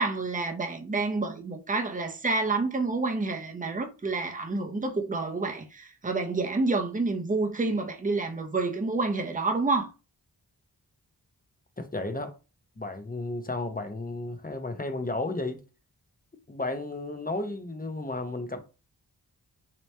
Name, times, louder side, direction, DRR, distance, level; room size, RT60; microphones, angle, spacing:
voice 1, 0.0-9.9, right 3 dB, 20° right, 0.7 m, -28 dB
voice 2, 11.8-12.3 12.8-15.6 16.5-18.6, left 2 dB, 20° left, 0.7 m, -33 dB
3.0 x 2.9 x 3.2 m
wide cardioid pair, 50°, 41 cm